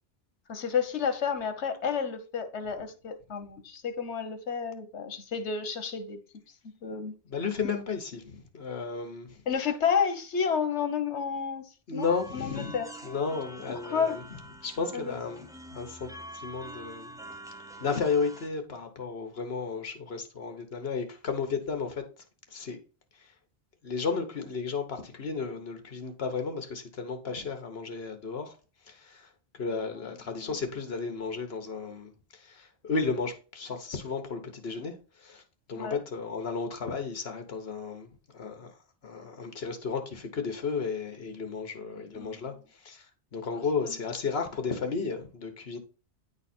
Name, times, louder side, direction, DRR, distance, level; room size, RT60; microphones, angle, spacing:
voice 1, 0.5-6.2 6.8-7.1 9.5-12.1 12.3-12.9 13.7-14.2 14.9-15.2 29.9-30.1 30.4-30.5 35.8-36.0 42.1-42.5 43.5-43.9, left 6 dB, 85° left, 1.3 m, -31 dB
voice 2, 7.3-9.4 11.9-12.8 13.0-14.2 14.6-17.1 17.8-22.0 22.5-22.8 23.1-23.3 23.8-28.6 28.8-35.4 35.7-38.1 38.3-38.8 39.0-45.8, left 5 dB, 65° left, 1.4 m, -33 dB
sound 1, 12.0-18.5, right 1 dB, 5° right, 0.7 m, -46 dB
9.3 x 4.0 x 4.3 m
omnidirectional pair, 1.1 m